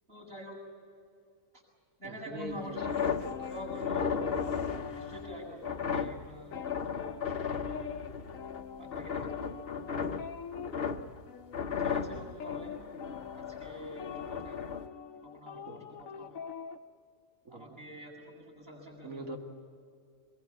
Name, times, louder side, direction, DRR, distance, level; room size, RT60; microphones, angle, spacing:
voice 1, 0.1-0.6 1.5-1.6 2.0-3.1 3.5-4.1 4.9-7.6 8.8-9.4 11.8-12.8 13.3-14.6 15.1-16.4 17.5-19.4, equal, 35° right, -7 dB, 6.9 m, -46 dB
voice 2, 2.0-3.1 3.4-3.5 4.1-4.5 15.7-15.9 17.4-17.8 19.0-19.4, right 1 dB, 60° right, 3 dB, 2.4 m, -43 dB
sound 1, 2.5-8.6 8.9-11.2 11.5-14.9, left 6 dB, 45° left, 1.0 m, -35 dB
sound 2, 3.2-5.9 6.2-16.8, left 6 dB, 65° left, 1.3 m, -45 dB
24.0 x 22.5 x 7.3 m, 2.3 s
omnidirectional pair, 1.6 m